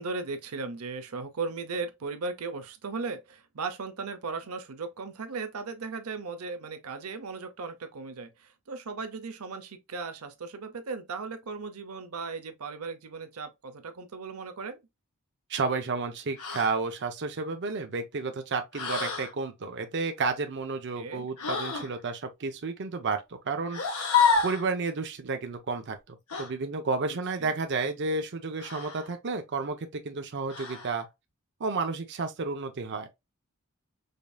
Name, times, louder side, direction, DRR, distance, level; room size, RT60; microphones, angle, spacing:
voice 1, 0.0-14.8 21.0-21.3 27.4-27.5, right 4 dB, 90° right, 0.7 m, -37 dB
voice 2, 15.5-23.8 24.4-31.1 31.6-33.1, right 4 dB, 55° right, 0.6 m, -31 dB
sound 1, 16.4-16.8 18.7-19.3 21.4-21.9 23.7-24.7 26.3-26.5 28.6-29.1 30.5-31.0, left 5 dB, 80° left, 1.2 m, -28 dB
5.0 x 2.6 x 2.2 m
head